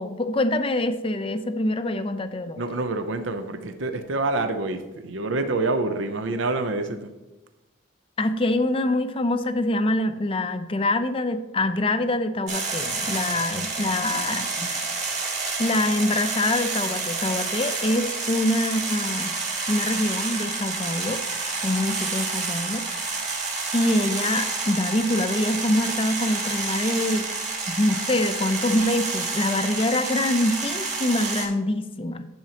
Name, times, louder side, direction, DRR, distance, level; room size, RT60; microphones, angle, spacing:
voice 1, 0.0-2.6 8.2-14.9 15.6-19.3 19.7-21.2 21.6-22.8 23.7-27.3 27.7-32.3, left 1 dB, 25° left, 9 dB, 0.5 m, -25 dB
voice 2, 2.6-7.1, right 2 dB, 70° right, 8 dB, 0.6 m, -27 dB
sound 1, 12.5-31.5, right 4 dB, 35° right, 1.7 m, -29 dB
10.5 x 7.2 x 2.8 m, 1.1 s
head